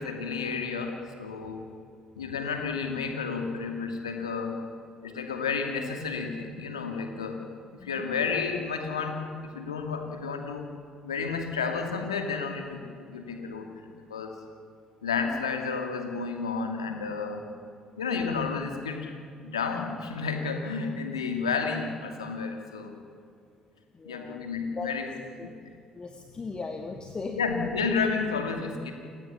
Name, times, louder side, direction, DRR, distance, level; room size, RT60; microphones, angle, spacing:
voice 1, 0.0-1.7 2.2-4.6 5.0-7.4 7.8-10.6 11.0-12.8 13.1-14.3 15.0-17.4 18.0-19.1 19.4-22.9 24.0-25.0 25.4-25.5 27.4-28.9, left 5 dB, 90° left, 4 dB, 2.5 m, -31 dB
voice 2, 7.8-8.2 23.9-24.5 24.8-24.9 25.4-25.6 25.9-27.4, left 4 dB, 35° left, 5 dB, 2.0 m, -38 dB
29.0 x 17.5 x 7.1 m, 2.5 s
hypercardioid pair, 50°, 3 cm